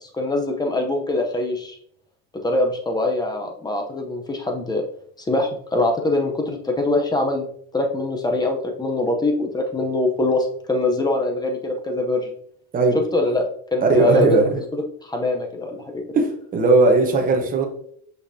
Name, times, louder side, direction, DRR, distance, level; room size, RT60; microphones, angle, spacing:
voice 1, 0.0-1.8 2.3-4.8 5.3-7.4 7.7-12.3 12.9-13.5 13.7-14.5 15.0-16.0, left 2 dB, 10° left, 3 dB, 0.7 m, -23 dB
voice 2, 13.8-14.6 16.1-17.7, right 3 dB, 20° right, 2 dB, 0.9 m, -17 dB
6.2 x 5.7 x 2.7 m, 0.64 s
cardioid pair, 145°, 40 cm